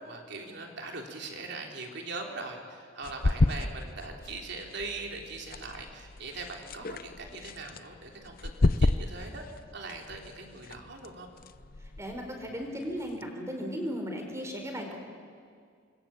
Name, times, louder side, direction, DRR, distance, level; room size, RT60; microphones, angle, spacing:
voice 1, 0.0-9.4 9.7-11.3, right 3 dB, 60° right, 2 dB, 3.6 m, -41 dB
sound 1, 3.0-13.3, left 2 dB, 45° left, 0.7 m, -33 dB
voice 2, 12.0-15.0, equal, 15° right, 3 dB, 4.5 m, -36 dB
27.5 x 22.0 x 8.8 m, 2.2 s
head